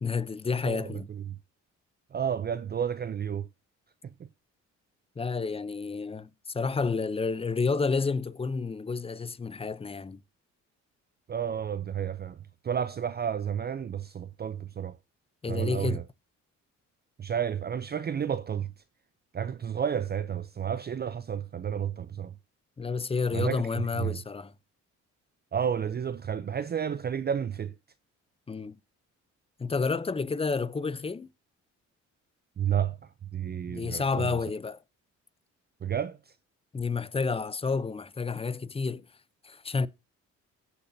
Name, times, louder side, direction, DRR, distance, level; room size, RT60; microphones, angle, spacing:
voice 1, 0.0-1.1 5.2-10.2 15.4-16.0 22.8-24.5 28.5-28.8 29.6-31.3 33.7-34.8 36.7-39.0 39.4-39.9, left 4 dB, 20° left, 0.6 m, -30 dB
voice 2, 0.6-1.4 2.1-3.5 4.0-4.3 11.3-12.4 12.6-15.0 15.5-16.0 17.2-18.7 19.3-22.3 23.3-24.2 25.5-27.7 32.6-33.0 33.3-34.3 35.8-36.2, right 8 dB, 35° right, 0.5 m, -31 dB
17.0 x 6.9 x 2.7 m
cardioid pair, 90°, 30 cm